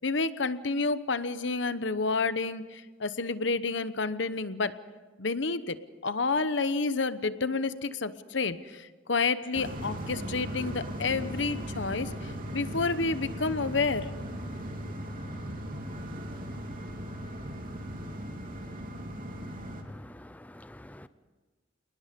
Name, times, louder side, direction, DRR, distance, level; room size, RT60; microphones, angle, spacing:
voice 1, 0.0-4.8 5.2-14.1, left 4 dB, 65° left, 1.0 m, -30 dB
sound 1, 9.5-19.8, equal, 45° right, 3.0 m, -38 dB
voice 2, 19.8-21.1, left 1 dB, 10° left, 0.5 m, -48 dB
28.5 x 19.5 x 5.3 m
head